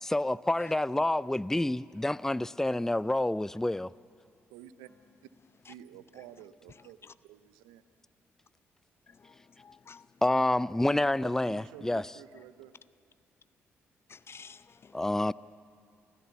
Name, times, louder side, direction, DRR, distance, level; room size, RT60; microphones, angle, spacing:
voice 1, 0.0-3.9 10.2-12.1 14.9-15.3, left 1 dB, 5° left, 19 dB, 0.4 m, -28 dB
voice 2, 4.5-4.9 5.7-7.8 10.9-12.8, right 12 dB, 80° right, 13 dB, 0.7 m, -50 dB
voice 3, 9.1-10.1 14.1-15.0, left 5 dB, 40° left, 16 dB, 0.7 m, -51 dB
30.0 x 15.0 x 7.1 m, 2.5 s
hypercardioid pair, 45°, 6 cm